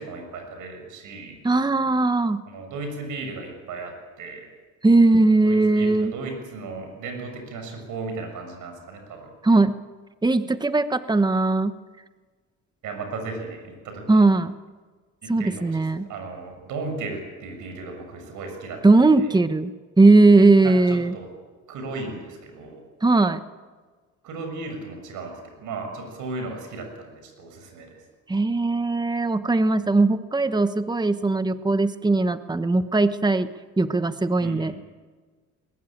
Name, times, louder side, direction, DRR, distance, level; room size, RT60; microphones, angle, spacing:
voice 1, 0.0-1.4 2.5-4.5 5.4-9.3 12.8-14.2 15.2-18.8 19.2-19.3 20.6-21.3 21.7-22.8 24.2-28.0 34.4-34.8, right 3 dB, 85° right, 5 dB, 6.6 m, -35 dB
voice 2, 1.4-2.4 4.8-6.1 9.4-9.8 10.2-11.7 14.1-14.5 15.3-16.1 18.8-19.7 20.0-21.1 23.0-23.4 28.3-33.5 33.8-34.7, right 3 dB, 15° right, 11 dB, 1.2 m, -19 dB
21.0 x 21.0 x 8.7 m, 1.4 s
cardioid pair, 90°, 30 cm